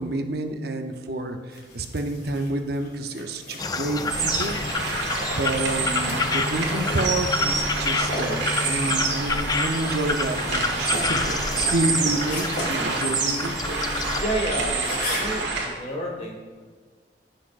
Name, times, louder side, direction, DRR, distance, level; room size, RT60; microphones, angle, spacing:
voice 1, 0.0-4.5 5.4-13.6, right 2 dB, 60° right, 5 dB, 0.7 m, -29 dB
sound 1, 1.5-15.4, left 1 dB, 55° left, 2.3 m, -38 dB
sound 2, 3.6-14.2, left 3 dB, 20° left, 0.4 m, -29 dB
sound 3, 4.1-15.7, right 3 dB, 90° right, 1.8 m, -27 dB
voice 2, 14.2-16.4, right 1 dB, 35° left, 0 dB, 1.6 m, -30 dB
16.0 x 6.3 x 2.5 m, 1.5 s
head